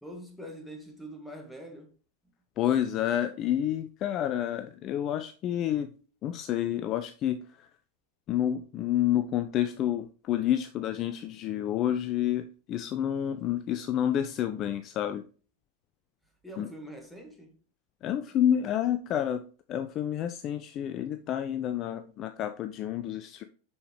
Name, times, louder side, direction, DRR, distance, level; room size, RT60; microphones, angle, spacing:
voice 1, 0.0-1.9 16.4-17.6, equal, 5° left, 1.8 m, -44 dB
voice 2, 2.6-5.9 6.2-7.7 8.3-15.2 16.6-16.7 18.0-19.4 19.7-23.4, left 11 dB, 35° left, 0.4 m, -29 dB
6.8 x 5.7 x 3.3 m
figure-of-eight pair, 90°, 0 cm